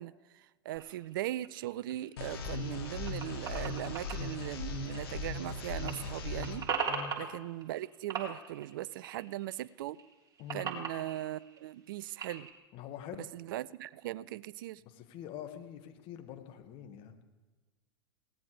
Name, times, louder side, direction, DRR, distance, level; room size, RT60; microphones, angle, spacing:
voice 1, 0.0-6.7 7.2-10.0 10.5-12.5 13.3-14.8, right 14 dB, 60° right, 21 dB, 0.4 m, -39 dB
sound 1, 0.7-5.5 5.7-7.8 8.1-9.6 9.9-12.5, right 5 dB, 30° right, 3.4 m, -40 dB
sound 2, 2.2-6.6, left 3 dB, 70° left, 2.6 m, -38 dB
voice 2, 12.7-13.3 14.8-17.2, left 9 dB, 45° left, 6 dB, 1.8 m, -45 dB
21.0 x 17.5 x 3.3 m, 1.2 s
figure-of-eight pair, 85°, 13 cm